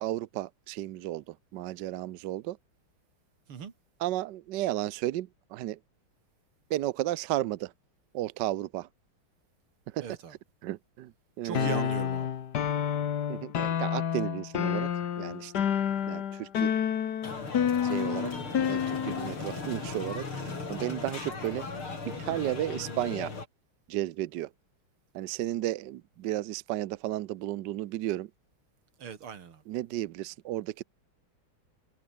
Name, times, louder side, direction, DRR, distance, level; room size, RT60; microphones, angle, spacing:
voice 1, 0.0-2.6 4.0-5.8 6.7-7.7 8.1-8.9 9.9-10.0 10.6-11.9 13.3-14.9 15.2-15.6 16.1-16.7 17.8-18.3 18.7-21.7 22.1-23.3 23.9-24.5 25.1-28.3 29.7-30.8, right 14 dB, 65° right, 1.1 m, -33 dB
voice 2, 10.0-10.4 11.4-12.3 29.0-29.6, right 7 dB, 85° right, 3.0 m, -39 dB
sound 1, 11.5-19.4, left 9 dB, 55° left, 1.7 m, -29 dB
sound 2, 17.2-23.5, left 4 dB, 80° left, 5.7 m, -37 dB
omnidirectional pair, 2.3 m